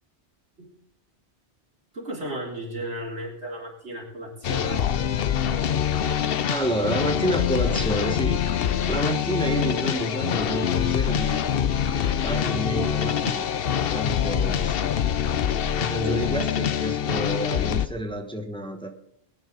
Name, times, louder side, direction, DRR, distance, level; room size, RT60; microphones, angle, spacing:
voice 1, 1.9-4.9 16.0-16.2, right 1 dB, 80° right, -2 dB, 4.0 m, -34 dB
sound 1, 4.4-17.9, left 9 dB, 60° left, 0.9 m, -25 dB
voice 2, 6.5-8.4 8.8-11.4 12.2-13.4 13.9-14.8 15.7-18.9, right 1 dB, 5° left, 5 dB, 1.3 m, -29 dB
21.5 x 10.0 x 4.0 m, 0.72 s
omnidirectional pair, 1.1 m